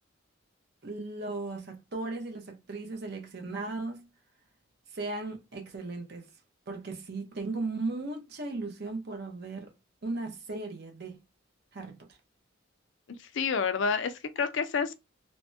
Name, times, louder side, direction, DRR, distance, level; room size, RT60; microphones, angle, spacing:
voice 1, 0.8-4.1 4.9-6.3 6.7-9.7 10.0-11.2 11.7-12.1, right 3 dB, 55° right, 0.7 m, -36 dB
voice 2, 13.1-14.9, left 5 dB, 65° left, 0.4 m, -29 dB
3.3 x 2.1 x 2.6 m
head